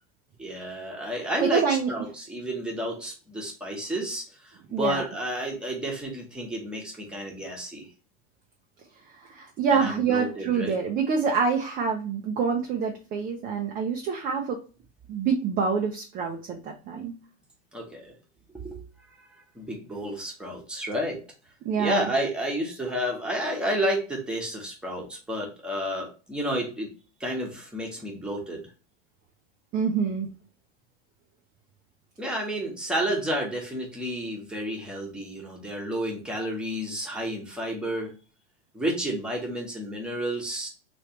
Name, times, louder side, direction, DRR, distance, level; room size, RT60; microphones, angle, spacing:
voice 1, 0.4-7.9 9.7-10.8 17.7-18.1 18.5-18.8 19.1-21.2 21.8-26.9 27.2-28.6 32.2-38.1 38.7-40.7, equal, 5° right, -2 dB, 1.1 m, -31 dB
voice 2, 1.4-1.9 4.7-5.1 9.3-14.6 15.1-17.1 21.6-22.1 29.7-30.3, right 6 dB, 25° right, 2 dB, 0.5 m, -26 dB
3.3 x 3.1 x 2.9 m, 0.35 s
supercardioid pair, 135°, 35 cm